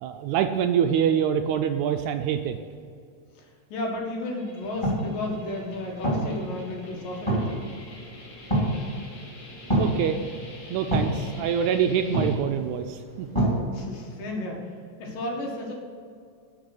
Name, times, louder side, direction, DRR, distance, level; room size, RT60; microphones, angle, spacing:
voice 1, 0.0-2.6 9.8-10.2 10.7-13.3, right 8 dB, 80° right, 7 dB, 1.8 m, -25 dB
voice 2, 3.4-7.6 13.7-14.7 15.0-15.7, left 2 dB, 90° left, 0 dB, 3.4 m, -33 dB
sound 1, 4.3-12.4, left 2 dB, 55° left, 3.3 m, -47 dB
sound 2, 4.6-13.6, right 1 dB, 10° left, 2.5 m, -29 dB
11.5 x 5.4 x 7.9 m, 2.3 s
omnidirectional pair, 3.8 m